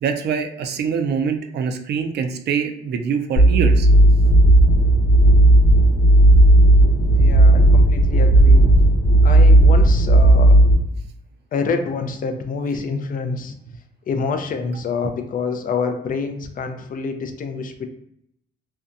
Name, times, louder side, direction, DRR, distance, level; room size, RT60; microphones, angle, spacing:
voice 1, 0.0-3.9, right 6 dB, 55° right, 6 dB, 0.4 m, -24 dB
sound 1, 3.4-10.7, right 1 dB, 75° left, 1.0 m, -12 dB
voice 2, 7.1-8.7 9.2-10.6 11.5-13.5 14.1-17.9, left 5 dB, 45° left, 6 dB, 0.4 m, -27 dB
2.7 x 2.2 x 2.5 m, 0.75 s
cardioid pair, 90°, 20 cm